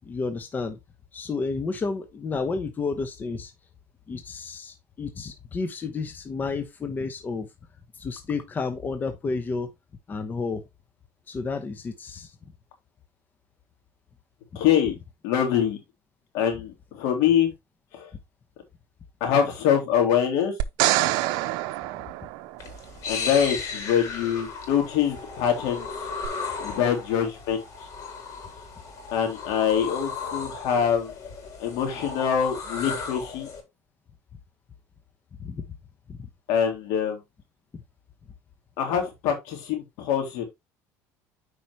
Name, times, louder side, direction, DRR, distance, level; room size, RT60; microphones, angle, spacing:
voice 1, 0.0-0.8 1.1-3.5 4.1-7.5 8.0-9.7 10.1-10.6 11.3-12.3 35.4-35.6 36.1-36.2, left 4 dB, 25° left, 1.0 m, -31 dB
voice 2, 14.5-14.9 15.2-15.8 16.3-17.5 17.9-18.1 19.2-20.5 23.1-25.9 26.6-27.6 29.1-31.1 31.6-33.5 36.5-37.2 38.8-40.4, left 8 dB, 70° left, 3.3 m, -24 dB
sound 1, 20.6-22.9 26.2-26.3, right 16 dB, 70° right, 0.7 m, -26 dB
sound 2, 22.6-33.6, left 4 dB, 50° left, 3.8 m, -35 dB
9.0 x 5.1 x 3.1 m
supercardioid pair, 120°, 7 cm